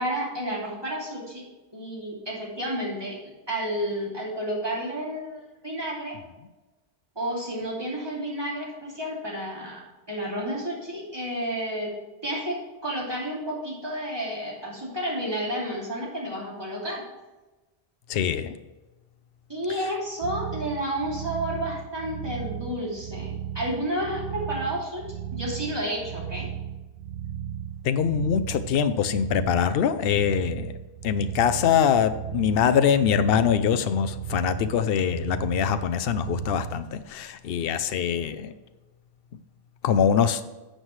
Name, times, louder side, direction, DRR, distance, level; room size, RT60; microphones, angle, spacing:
voice 1, 0.0-1.4 1.7-6.2 7.2-9.8 10.1-11.9 12.2-17.0 19.5-25.1 25.3-26.5, equal, 25° right, -5 dB, 2.8 m, -31 dB
voice 2, 18.1-18.6 27.8-30.7 31.0-38.5 39.8-40.4, left 8 dB, 65° left, 11 dB, 0.8 m, -23 dB
sound 1, 20.2-36.8, right 10 dB, 85° right, 0.8 m, -36 dB
11.5 x 7.6 x 3.2 m, 1.1 s
omnidirectional pair, 1.1 m